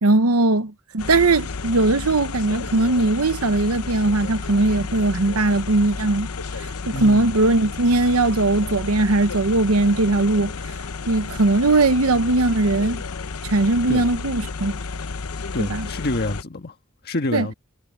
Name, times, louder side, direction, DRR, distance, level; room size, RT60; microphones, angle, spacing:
voice 1, 0.0-6.3 6.9-10.5 11.1-13.0 13.4-14.8 15.6-15.9 17.3-17.5, right 2 dB, 85° right, 1.0 m, -19 dB
sound 1, 1.0-16.4, left 4 dB, 90° left, 0.8 m, -32 dB
voice 2, 6.9-7.3 13.9-14.1 15.5-16.7 17.0-17.5, left 2 dB, 50° left, 1.5 m, -27 dB
head